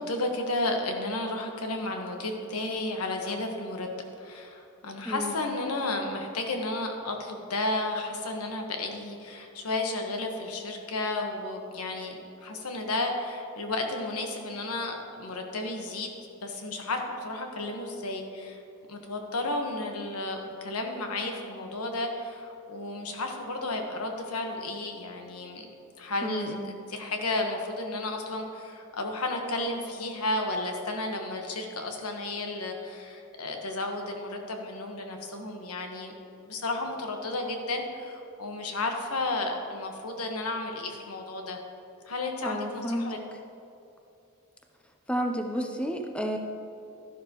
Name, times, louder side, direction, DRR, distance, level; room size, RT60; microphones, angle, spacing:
voice 1, 0.0-3.9 4.2-16.1 16.4-18.6 18.9-25.6 26.0-36.1 36.4-41.6 42.1-43.2, left 2 dB, 85° left, 3 dB, 1.3 m, -33 dB
voice 2, 26.2-26.7 42.4-43.2 45.1-46.4, equal, 5° left, 3 dB, 0.5 m, -31 dB
12.5 x 11.0 x 3.0 m, 2.7 s
head